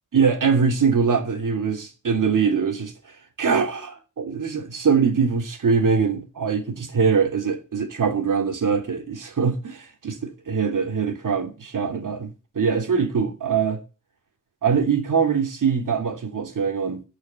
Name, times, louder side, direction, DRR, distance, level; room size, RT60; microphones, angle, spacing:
voice 1, 0.1-2.9 3.4-12.3 12.5-13.8 14.6-17.0, right 6 dB, 80° right, 2.9 m, -22 dB
12.5 x 6.4 x 9.1 m
wide cardioid pair, 115°, 31 cm